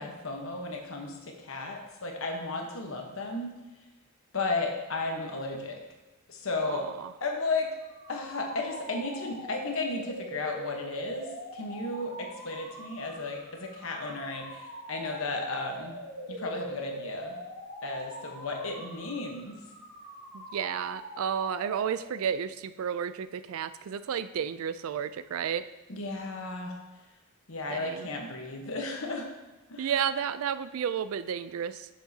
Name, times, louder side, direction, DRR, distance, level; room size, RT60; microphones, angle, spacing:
voice 1, 0.0-3.5 4.3-5.8 6.3-6.9 7.2-7.7 8.1-15.9 16.3-17.4 17.8-19.6 25.9-26.7 27.5-29.3 29.7-29.9, left 3 dB, 65° left, 2 dB, 1.1 m, -34 dB
voice 2, 6.6-7.1 20.3-25.7 27.7-28.1 29.8-31.9, right 8 dB, 70° right, 14 dB, 0.3 m, -32 dB
sound 1, 7.8-22.4, equal, 50° right, 2.3 m, -44 dB
7.5 x 7.3 x 2.8 m, 1.1 s
head